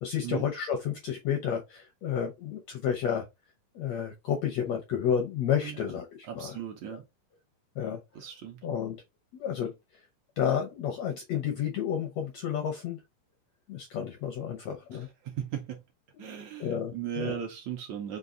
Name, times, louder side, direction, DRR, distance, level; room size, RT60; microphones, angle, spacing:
voice 1, 0.0-3.2 3.7-6.6 6.9-7.0 7.8-8.0 8.6-8.9 9.3-9.7 10.4-13.0 13.7-15.1 16.1-16.2 16.6-17.4, left 8 dB, 75° left, 1.5 m, -31 dB
voice 2, 6.3-7.0 8.2-8.6 15.3-15.8 16.2-18.2, right 9 dB, 75° right, 1.8 m, -37 dB
5.4 x 2.6 x 3.7 m
omnidirectional pair, 3.9 m